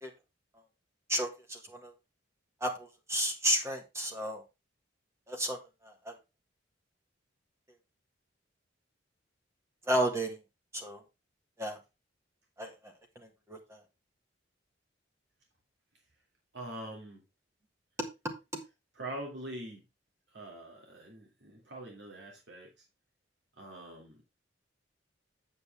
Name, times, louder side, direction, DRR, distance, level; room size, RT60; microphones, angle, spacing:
voice 1, 1.1-1.9 2.6-4.4 5.3-5.6 5.8-6.1 9.9-10.4 10.7-11.0 11.6-11.8 12.6-12.9 13.5-13.8, equal, 15° right, 3 dB, 1.5 m, -32 dB
voice 2, 16.5-17.2 19.0-19.8 20.3-22.8 23.6-24.2, right 1 dB, 65° right, 0 dB, 2.3 m, -44 dB
7.9 x 7.8 x 3.3 m, 0.25 s
head